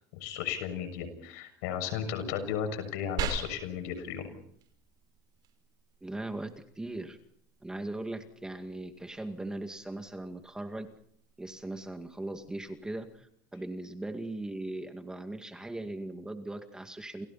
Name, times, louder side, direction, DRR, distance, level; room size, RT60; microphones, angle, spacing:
voice 1, 0.1-4.3, left 8 dB, 80° left, 8 dB, 6.7 m, -35 dB
sound 1, 3.2-13.2, right 7 dB, 50° right, 5.8 m, -44 dB
voice 2, 6.0-7.2 7.6-10.9 11.4-17.3, right 2 dB, 10° right, 6 dB, 2.2 m, -39 dB
29.5 x 28.5 x 4.3 m, 0.65 s
supercardioid pair, 120°, 9 cm